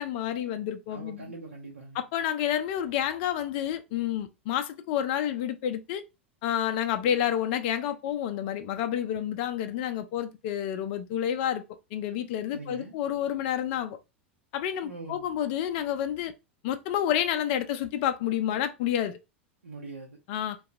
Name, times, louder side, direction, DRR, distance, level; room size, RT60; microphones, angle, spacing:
voice 1, 0.0-1.2 2.0-6.0 6.4-11.6 11.9-14.0 14.5-16.3 16.6-19.2 20.3-20.6, left 10 dB, 50° left, 0.4 m, -29 dB
voice 2, 0.9-2.0 12.5-12.9 14.8-15.3 19.6-20.2, right 3 dB, 80° right, 0.7 m, -42 dB
3.7 x 2.2 x 2.6 m
figure-of-eight pair, 90°, 7 cm